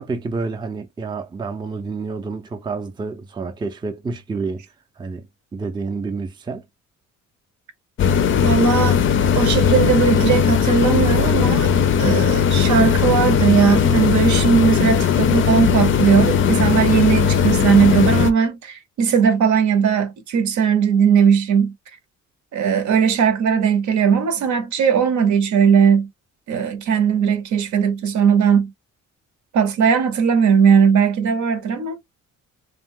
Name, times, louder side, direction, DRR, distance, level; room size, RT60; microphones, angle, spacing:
voice 1, 0.0-4.6 5.0-5.3 5.5-6.6, right 4 dB, 15° right, 0.4 m, -29 dB
sound 1, 8.0-18.3, left 7 dB, 45° left, 0.4 m, -18 dB
voice 2, 8.4-9.0 9.3-11.7 12.0-21.7 22.5-26.1 26.5-28.7 29.5-32.0, right 7 dB, 70° right, 0.8 m, -18 dB
2.4 x 2.2 x 3.5 m
cardioid pair, 90°, 30 cm